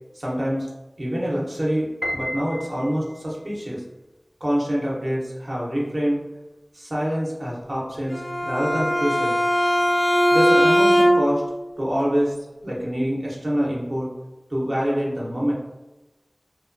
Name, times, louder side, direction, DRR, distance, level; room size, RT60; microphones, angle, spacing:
voice 1, 0.1-0.7 1.0-3.8 4.4-6.2 6.7-9.4 10.3-11.4 11.8-12.4 12.6-14.1 14.5-15.5, equal, 55° right, -5 dB, 0.7 m, -25 dB
Piano, 2.0-3.3, equal, 5° left, 0.4 m, -31 dB
Bowed string instrument, 8.1-11.5, equal, 65° left, 0.6 m, -19 dB
2.8 x 2.1 x 2.5 m, 1.0 s
wide cardioid pair, 45°, 0 cm